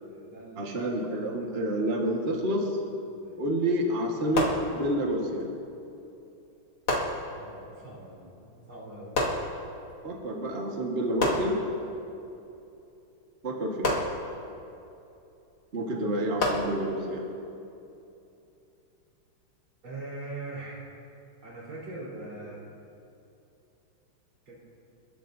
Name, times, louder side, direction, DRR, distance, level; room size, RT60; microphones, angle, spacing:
voice 1, 0.0-0.8 3.2-3.4 7.2-9.2 19.8-20.8 21.4-22.7 24.5-24.6, right 2 dB, 80° right, -5 dB, 4.8 m, -42 dB
voice 2, 0.6-2.7 3.4-5.5 10.0-11.6 13.4-13.9 15.7-17.2, right 1 dB, 30° right, 0 dB, 1.6 m, -28 dB
sound 1, 4.3-5.3 6.9-7.7 9.1-10.0 11.2-12.1 13.8-14.7 16.4-17.3, left 1 dB, 90° left, 3.0 m, -31 dB
30.0 x 12.5 x 2.7 m, 2.8 s
omnidirectional pair, 2.3 m